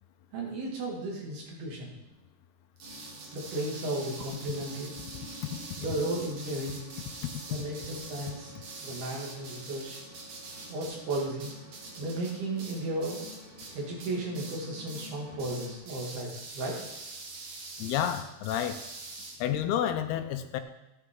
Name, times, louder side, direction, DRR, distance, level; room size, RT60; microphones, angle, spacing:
voice 1, 0.3-1.9 3.3-4.9 5.8-6.8 7.5-10.0 10.7-11.5 12.0-13.2 13.7-16.8, right 2 dB, 80° right, -2 dB, 4.3 m, -34 dB
sound 1, 2.8-15.8, equal, 25° right, 4.5 m, -50 dB
sound 2, 2.8-13.7 14.0-14.6 14.9-15.1 15.4-19.4, right 3 dB, 50° right, 2.5 m, -44 dB
voice 2, 17.8-18.8 19.4-20.6, left 10 dB, 85° left, 8 dB, 2.7 m, -30 dB
14.0 x 9.5 x 3.8 m, 0.96 s
omnidirectional pair, 4.4 m